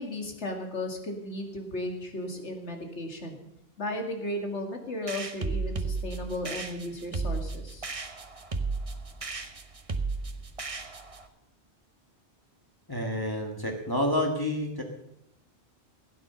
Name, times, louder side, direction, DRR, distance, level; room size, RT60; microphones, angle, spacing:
voice 1, 0.0-3.4 3.8-7.9, left 1 dB, 85° left, 3 dB, 2.4 m, -35 dB
sound 1, 5.1-11.3, right 3 dB, 30° right, 1.0 m, -34 dB
voice 2, 12.9-14.8, left 1 dB, 20° left, 1 dB, 1.5 m, -29 dB
16.0 x 9.2 x 6.7 m, 0.81 s
omnidirectional pair, 1.1 m